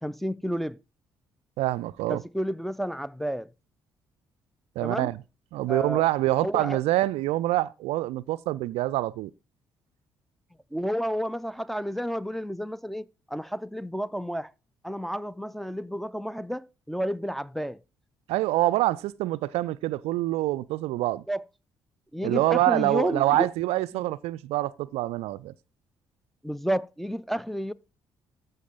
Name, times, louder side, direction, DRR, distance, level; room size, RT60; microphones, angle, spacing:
voice 1, 0.0-0.8 2.1-3.5 4.8-5.1 5.7-6.1 6.4-6.8 10.7-14.5 14.8-17.8 21.3-21.4 22.1-23.5 26.4-27.7, equal, ahead, 0.4 m, -31 dB
voice 2, 1.6-2.2 4.8-5.2 5.5-9.3 18.3-21.2 22.2-25.5, right 16 dB, 60° right, 0.4 m, -26 dB
14.5 x 5.4 x 3.9 m
figure-of-eight pair, 45°, 12 cm